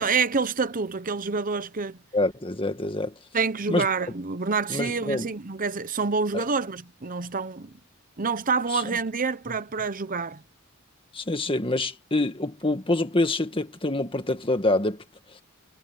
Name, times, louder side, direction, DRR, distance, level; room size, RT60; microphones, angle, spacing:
voice 1, 0.0-2.0 3.3-7.7 8.2-10.4, right 4 dB, 40° right, 0.9 m, -27 dB
voice 2, 2.1-3.1 3.7-3.9 4.7-5.3 6.3-6.4 8.7-8.8 11.1-15.0, left 2 dB, 25° left, 1.8 m, -26 dB
head